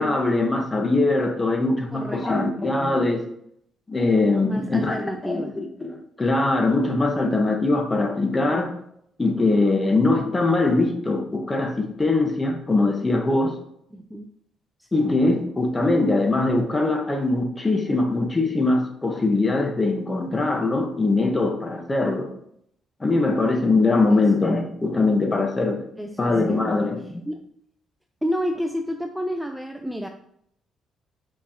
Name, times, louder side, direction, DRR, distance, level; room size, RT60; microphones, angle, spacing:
voice 1, 0.0-3.2 3.9-8.7 9.2-13.6 14.9-22.3 23.0-25.8 26.2-27.2, left 2 dB, 20° left, 4 dB, 1.2 m, -22 dB
voice 2, 1.9-2.3 4.4-5.6 13.9-14.3 14.8-15.1 24.1-24.2 26.0-26.7 27.3-27.5 28.2-30.1, equal, 5° right, 4 dB, 0.5 m, -30 dB
7.1 x 4.7 x 2.9 m, 0.72 s
cardioid pair, 90°, 0 cm